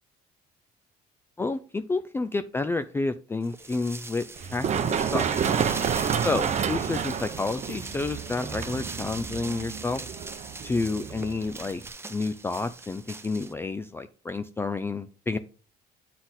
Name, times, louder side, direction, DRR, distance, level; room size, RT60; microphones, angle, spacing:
voice 1, 1.4-4.2 4.5-5.3 6.2-10.0 10.6-11.8 12.1-15.4, left 3 dB, 15° left, 10 dB, 0.3 m, -30 dB
sound 1, 3.4-13.5, right 3 dB, 15° right, 0.7 m, -40 dB
Run, 4.4-11.9, right 7 dB, 45° right, 0.7 m, -30 dB
7.9 x 4.2 x 3.9 m, 0.40 s
cardioid pair, 110°, 17 cm